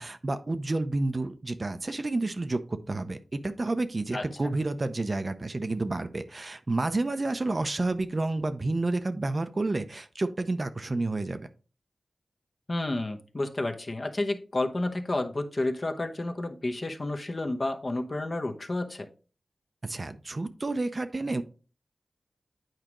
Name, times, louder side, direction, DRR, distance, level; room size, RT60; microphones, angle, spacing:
voice 1, 0.0-11.4 19.8-21.4, right 2 dB, 40° right, 10 dB, 0.6 m, -30 dB
voice 2, 12.7-19.1, left 2 dB, 40° left, 5 dB, 0.8 m, -30 dB
9.0 x 4.9 x 3.0 m, 0.36 s
wide cardioid pair, 75°, 0 cm